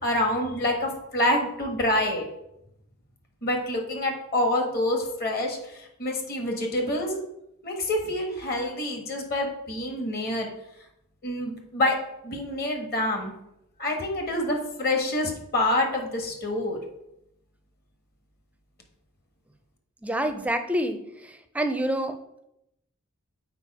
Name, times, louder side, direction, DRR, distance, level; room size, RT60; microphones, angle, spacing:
voice 1, 0.0-2.2 3.4-7.2 7.6-10.5 11.2-12.0 12.2-13.3 13.8-16.8, left 1 dB, 45° left, 3 dB, 1.4 m, -27 dB
voice 2, 20.0-21.0 21.5-22.2, right 1 dB, 5° right, 7 dB, 0.5 m, -26 dB
6.7 x 4.9 x 4.8 m, 0.82 s
head